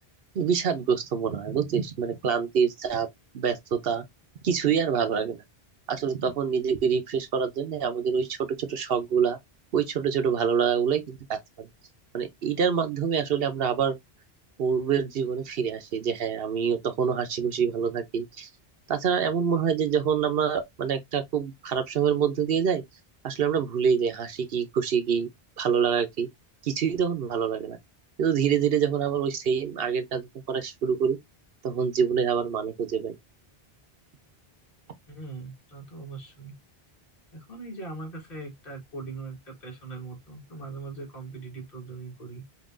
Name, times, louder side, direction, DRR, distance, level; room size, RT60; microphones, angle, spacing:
voice 1, 0.3-3.1 3.3-4.0 4.4-5.4 5.9-9.4 9.7-11.7 12.1-14.0 14.6-18.5 18.9-22.8 23.2-25.3 25.6-26.3 26.6-27.8 28.2-31.2 31.6-33.1, right 7 dB, 70° right, 0.9 m, -26 dB
voice 2, 35.1-36.5 37.3-42.5, right 3 dB, 60° left, 1.9 m, -40 dB
5.3 x 2.7 x 2.5 m
omnidirectional pair, 1.0 m